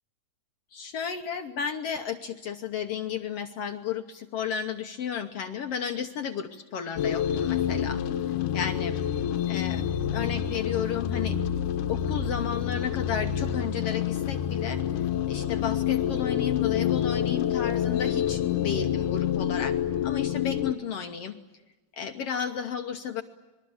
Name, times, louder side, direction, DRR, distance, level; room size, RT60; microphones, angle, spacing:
voice 1, 0.7-8.0 8.5-8.9 9.5-9.8 10.1-11.4 11.9-14.8 15.3-19.8 20.0-21.3 22.0-23.2, left 7 dB, 65° left, 6 dB, 1.7 m, -33 dB
sound 1, 7.0-20.7, left 9 dB, 85° left, 2.6 m, -28 dB
27.5 x 22.5 x 8.7 m, 1.2 s
omnidirectional pair, 3.5 m